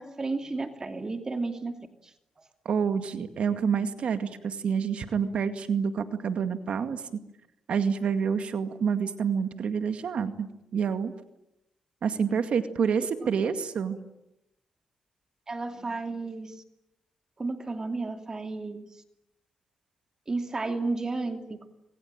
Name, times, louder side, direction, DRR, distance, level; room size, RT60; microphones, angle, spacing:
voice 1, 0.0-1.7 15.5-16.6 17.4-18.9 20.3-21.7, right 3 dB, 30° right, 6 dB, 2.6 m, -32 dB
voice 2, 2.7-7.0 7.7-10.5 10.7-11.1 12.0-14.0, right 6 dB, 65° right, 8 dB, 2.1 m, -28 dB
26.0 x 24.0 x 9.1 m, 0.88 s
cardioid pair, 90°, 2 cm